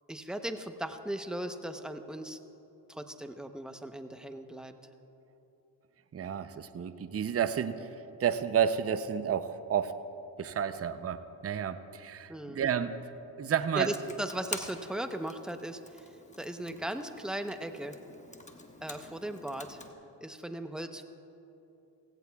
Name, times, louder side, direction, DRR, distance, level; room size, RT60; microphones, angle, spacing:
voice 1, 0.1-2.4 2.9-4.7 12.3-12.6 13.7-17.9 18.8-19.8 20.2-21.0, right 1 dB, ahead, 7 dB, 0.8 m, -37 dB
voice 2, 6.1-7.9 8.2-9.9 10.4-13.0 13.4-14.0, right 8 dB, 30° right, 11 dB, 0.6 m, -31 dB
Computer keyboard, 13.8-19.9, left 2 dB, 15° left, 1.1 m, -47 dB
17.0 x 16.0 x 2.3 m, 2.9 s
supercardioid pair, 55°, 44 cm